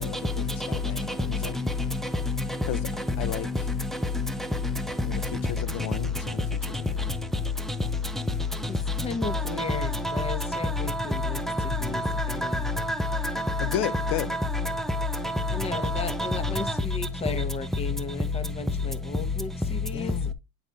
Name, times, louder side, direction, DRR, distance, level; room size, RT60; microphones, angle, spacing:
voice 1, 0.0-1.5 2.7-2.8 3.2-3.5 5.0-7.2 13.6-14.3 19.9-20.3, left 12 dB, 45° left, 0.7 m, -34 dB
voice 2, 0.8-2.0 2.3-2.5 2.7-4.3 4.6-5.5 8.1-8.2 9.2-16.7, left 2 dB, ahead, 0.3 m, -28 dB
voice 3, 8.7-11.4 11.8-12.7 15.5-20.3, left 4 dB, 15° left, 0.9 m, -35 dB
8.8 x 4.1 x 3.5 m
supercardioid pair, 145°, 37 cm